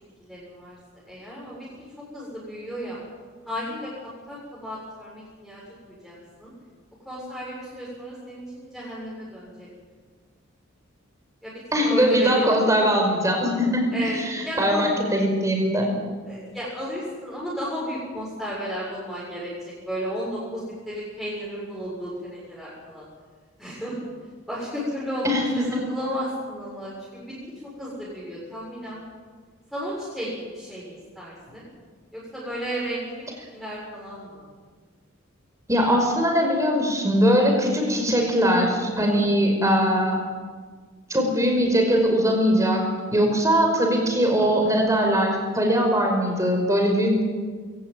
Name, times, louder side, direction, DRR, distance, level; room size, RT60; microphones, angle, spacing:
voice 1, 0.2-0.8 1.0-1.7 2.1-3.0 3.4-3.9 4.3-6.5 7.0-9.7 11.4-12.6 13.9-14.2 14.4-14.9 16.3-19.5 19.9-23.0 23.6-24.0 24.5-25.3 25.5-27.3 27.6-29.0 29.7-31.6 32.1-34.4, equal, ahead, -8 dB, 6.7 m, -33 dB
voice 2, 11.7-15.9 25.2-25.4 35.7-40.2 41.1-42.8 43.1-47.2, equal, 15° right, 2 dB, 5.2 m, -21 dB
22.5 x 17.0 x 9.3 m, 1.5 s
head